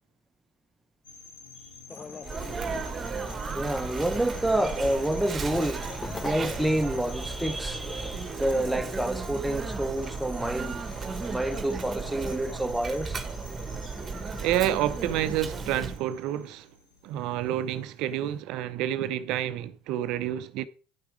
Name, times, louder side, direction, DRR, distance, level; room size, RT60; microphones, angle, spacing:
sound 1, 1.0-18.4, left 4 dB, 90° left, 2.7 m, -50 dB
sound 2, 1.9-12.5, left 4 dB, 25° left, 0.6 m, -45 dB
Sneeze, 2.2-16.0, right 4 dB, 30° right, 1.3 m, -35 dB
voice 1, 3.5-10.8 11.3-13.2, right 1 dB, 5° right, 1.0 m, -28 dB
voice 2, 14.4-16.7 17.0-20.6, right 12 dB, 60° right, 0.6 m, -29 dB
10.5 x 5.9 x 4.9 m
hypercardioid pair, 80°, 0 cm